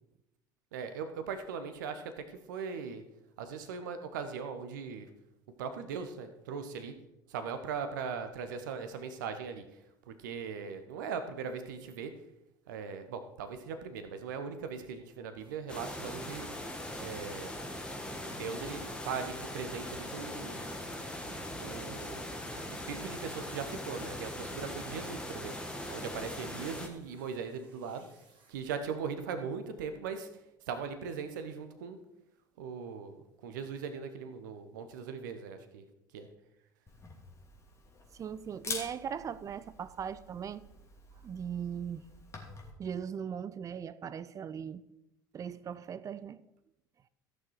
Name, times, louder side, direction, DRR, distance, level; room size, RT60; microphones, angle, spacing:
voice 1, 0.7-3.0 3.4-5.1 5.6-7.0 7.3-9.7 10.1-12.1 12.7-16.5 17.0-17.5 18.3-20.6 21.6-22.3 22.7-25.6 25.9-28.1 28.5-30.3 30.7-32.0 32.6-33.1 33.4-35.8 36.1-36.3, right 6 dB, 70° right, 1.0 m, -39 dB
sound 1, 15.4-28.6 30.9-31.0 31.4-31.5 32.0-32.1 32.6-32.7 33.1-33.3 33.7-33.8 34.2-34.3, right 1 dB, 50° right, 2.6 m, -59 dB
sound 2, 15.7-26.9, left 1 dB, 10° left, 1.6 m, -40 dB
Camera, 36.9-42.7, left 3 dB, 25° left, 2.7 m, -46 dB
voice 2, 38.2-40.6 41.2-42.1 42.8-44.8 45.3-46.4, right 8 dB, 30° right, 0.5 m, -39 dB
14.5 x 6.5 x 4.7 m
figure-of-eight pair, 65°, 11 cm